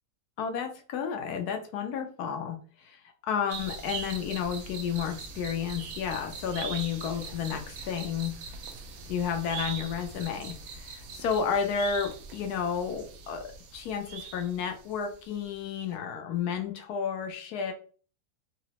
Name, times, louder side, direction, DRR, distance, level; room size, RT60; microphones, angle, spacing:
voice 1, 0.4-8.4 9.1-17.7, left 7 dB, 75° left, 6 dB, 1.2 m, -32 dB
sound 1, 3.5-15.2 15.4-15.5, right 5 dB, 70° right, 0.9 m, -41 dB
3.8 x 2.1 x 2.8 m, 0.41 s
omnidirectional pair, 1.7 m